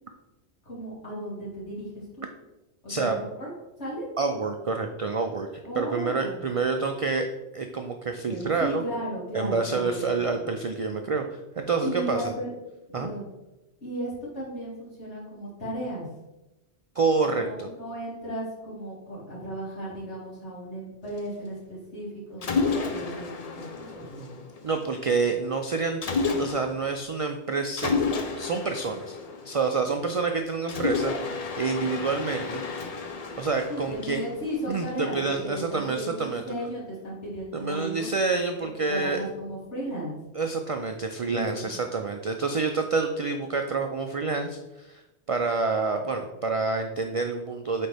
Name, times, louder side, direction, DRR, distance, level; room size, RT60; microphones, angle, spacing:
voice 1, 0.7-2.3 2.8-3.5 3.8-4.1 5.6-6.5 8.3-10.5 11.8-12.5 12.9-13.3 13.8-16.1 17.2-24.3 33.7-38.1 38.9-40.2 41.3-41.8, right 1 dB, 85° left, -6 dB, 2.6 m, -35 dB
voice 2, 4.2-5.5 5.8-7.3 7.5-8.8 9.3-12.2 12.9-13.1 17.0-17.7 24.6-26.0 26.4-28.0 28.4-29.2 29.4-32.6 33.4-34.2 34.7-36.4 37.5-39.2 40.3-45.0 45.3-47.9, right 4 dB, 60° right, 5 dB, 0.3 m, -28 dB
Mechanisms, 22.4-24.8 26.0-26.9 27.8-30.1 30.7-34.8, left 4 dB, 45° left, 0.6 m, -31 dB
8.5 x 3.8 x 3.4 m, 1.0 s
omnidirectional pair, 1.2 m